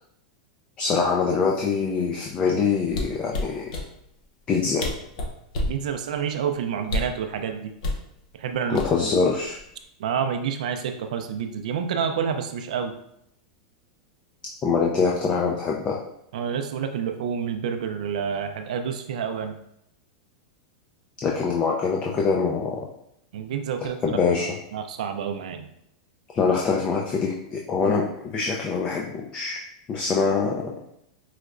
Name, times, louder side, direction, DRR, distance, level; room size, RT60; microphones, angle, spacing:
voice 1, 0.8-3.7 4.5-4.8 8.7-9.6 14.6-16.0 21.2-22.9 24.0-24.5 26.3-29.6 29.9-30.6, left 5 dB, 25° left, -1 dB, 0.4 m, -24 dB
sound 1, 2.9-3.9 4.5-4.6 4.8-5.8 6.8-7.2 7.8-8.0 8.7-9.2 9.6-9.8, left 2 dB, 65° left, 0.6 m, -28 dB
voice 2, 5.7-7.7 8.3-8.8 10.0-12.9 16.3-19.5 23.3-25.7, right 7 dB, 80° right, 6 dB, 0.4 m, -29 dB
4.6 x 2.1 x 2.4 m, 0.76 s
supercardioid pair, 135°, 4 cm